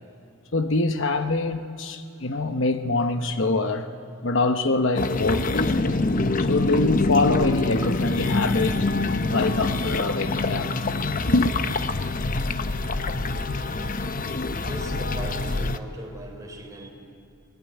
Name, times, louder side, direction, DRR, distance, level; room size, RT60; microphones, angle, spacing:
voice 1, 0.5-3.9 4.2-6.0 6.4-8.9 9.3-10.7 11.3-11.6, left 2 dB, 60° left, 1.0 m, -24 dB
sound 1, 5.0-15.8, left 3 dB, 40° left, 0.8 m, -25 dB
voice 2, 14.5-16.9, right 1 dB, 15° right, 3.9 m, -38 dB
23.0 x 20.5 x 9.4 m
head